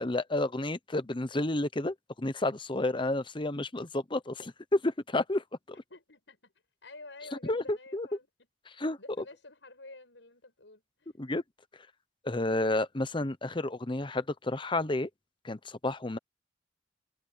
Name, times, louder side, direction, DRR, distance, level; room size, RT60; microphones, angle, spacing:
voice 1, 0.0-5.4 7.4-8.1 8.8-9.0 11.2-11.4 12.2-15.1 15.4-16.2, left 2 dB, 30° left, 1.0 m, -31 dB
voice 2, 5.9-6.5 6.8-8.3 8.7-11.1, left 2 dB, 85° left, 6.8 m, -50 dB
head